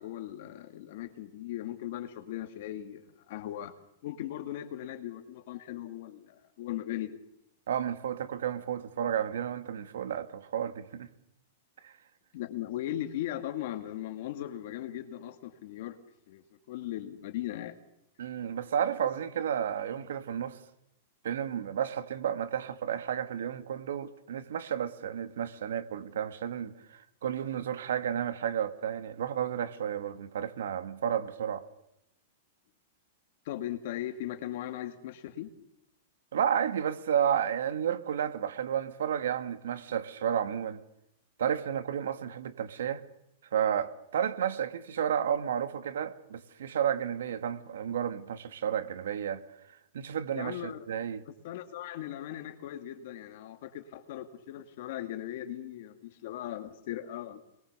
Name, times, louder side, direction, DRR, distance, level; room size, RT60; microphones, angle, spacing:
voice 1, 0.0-3.7 4.0-7.2 12.3-16.0 16.3-17.8 19.0-19.1 33.5-35.5 50.3-51.0 51.4-57.4, left 12 dB, 45° left, 2.3 m, -38 dB
voice 2, 7.7-11.1 11.8-11.9 18.2-20.6 21.2-31.7 36.3-40.8 41.4-43.0 43.5-49.4 49.9-51.2, right 9 dB, 80° right, 2.2 m, -32 dB
26.5 x 22.0 x 6.9 m
supercardioid pair, 175°, 0 cm